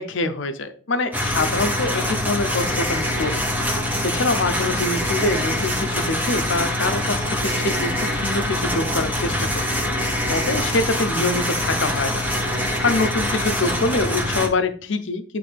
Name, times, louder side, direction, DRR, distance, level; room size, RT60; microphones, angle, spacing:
voice 1, 0.0-3.4 3.7-9.7 10.3-12.3 12.8-15.4, left 2 dB, 65° left, 9 dB, 0.7 m, -25 dB
sound 1, 1.1-14.5, left 1 dB, 10° right, 0.9 m, -24 dB
9.1 x 3.4 x 3.4 m, 0.43 s
head